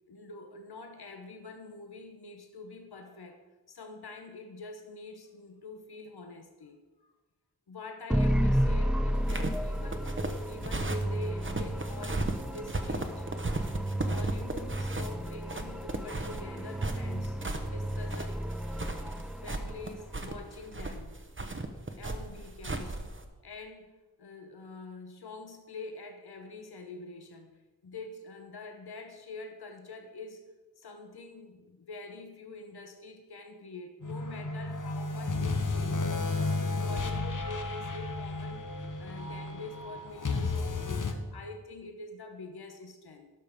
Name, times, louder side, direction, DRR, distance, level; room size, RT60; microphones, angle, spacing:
voice 1, 0.1-7.1 7.7-10.1 10.5-13.3 14.0-18.4 19.4-21.2 22.0-23.0 23.4-30.4 30.8-36.1 36.4-38.7 39.0-43.3, left 3 dB, 85° left, 6 dB, 1.0 m, -45 dB
sound 1, 8.1-20.3, equal, ahead, 0.4 m, -32 dB
sound 2, 9.2-23.2, right 2 dB, 30° right, 1.0 m, -36 dB
sound 3, 34.0-41.1, left 3 dB, 55° left, 1.0 m, -33 dB
12.0 x 6.3 x 5.1 m, 1.2 s
wide cardioid pair, 70°, 38 cm